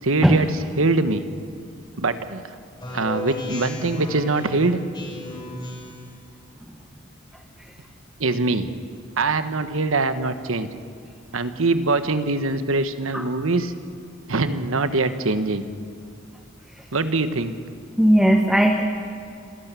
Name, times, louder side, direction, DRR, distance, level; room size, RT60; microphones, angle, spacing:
voice 1, 0.0-1.3 2.0-2.4 2.9-4.8 8.2-8.8 9.2-10.7 11.3-13.7 14.3-15.7 16.9-17.5, right 3 dB, 75° right, 10 dB, 1.2 m, -23 dB
Speech synthesizer, 2.8-6.1, left 1 dB, 20° left, 3.5 m, -34 dB
voice 2, 18.0-18.8, equal, ahead, 3 dB, 1.1 m, -17 dB
27.5 x 12.0 x 8.3 m, 2.4 s
head